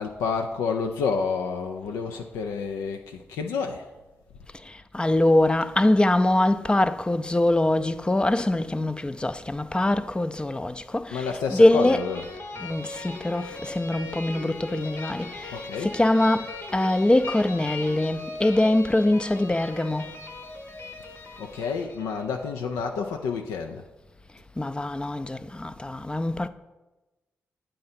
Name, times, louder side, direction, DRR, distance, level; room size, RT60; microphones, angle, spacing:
voice 1, 0.0-3.9 11.1-12.3 15.5-16.0 21.4-23.8, left 5 dB, 85° left, 0.3 m, -29 dB
voice 2, 4.9-12.0 12.6-15.3 15.8-20.1 24.6-26.5, left 1 dB, 20° left, 0.4 m, -23 dB
sound 1, 11.7-22.5, left 3 dB, 60° left, 0.9 m, -39 dB
8.4 x 3.9 x 4.2 m
supercardioid pair, 40°, 5 cm